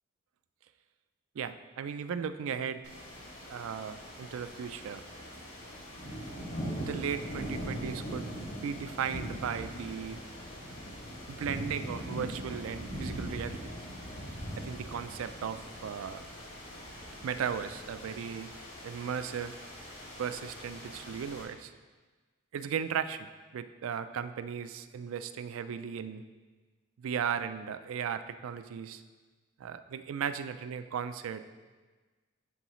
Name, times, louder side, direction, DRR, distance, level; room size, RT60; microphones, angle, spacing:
voice 1, 1.4-2.8 3.5-5.0 6.8-8.3 8.6-10.2 11.3-13.7 14.6-16.2 17.2-18.5 18.8-19.5 20.2-21.7 22.5-26.2 27.0-29.0 29.6-31.5, right 7 dB, 80° right, 11 dB, 0.3 m, -36 dB
sound 1, 2.8-21.4, equal, 60° left, 2.0 m, -41 dB
11.0 x 3.8 x 3.1 m, 1.3 s
head